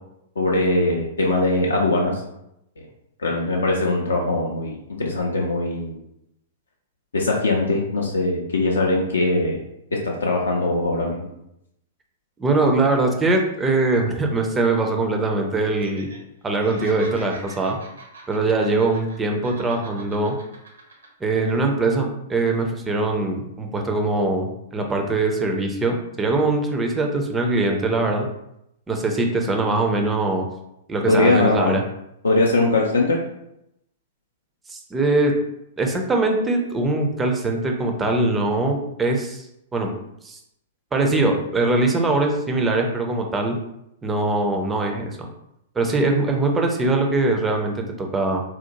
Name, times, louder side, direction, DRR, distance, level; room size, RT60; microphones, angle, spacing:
voice 1, 0.4-2.2 3.2-6.0 7.1-9.6 9.9-11.3 31.1-31.8 32.2-33.2, left 2 dB, 70° left, -1 dB, 0.4 m, -21 dB
voice 2, 12.4-16.1 16.4-17.8 18.3-20.3 21.2-28.3 28.9-30.5 30.9-31.8 34.7-35.3 35.8-39.5 39.7-39.9 40.2-40.4 40.9-43.6 44.0-45.1 45.8-48.4, right 2 dB, 15° right, 2 dB, 0.4 m, -22 dB
Laughter, 15.7-16.2 16.5-19.2 19.4-21.1 21.4-21.6, right 3 dB, 65° right, 0.6 m, -43 dB
2.8 x 2.0 x 2.8 m, 0.81 s
figure-of-eight pair, 105°, 0 cm